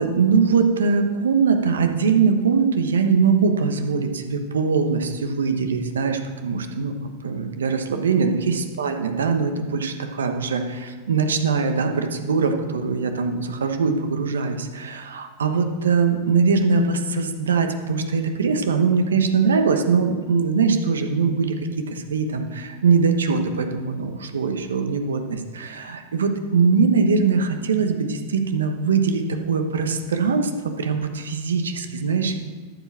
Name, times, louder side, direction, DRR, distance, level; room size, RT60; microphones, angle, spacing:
voice 1, 0.0-32.4, right 5 dB, 85° right, 6 dB, 1.1 m, -22 dB
12.5 x 5.1 x 7.4 m, 1.5 s
hypercardioid pair, 100°, 0 cm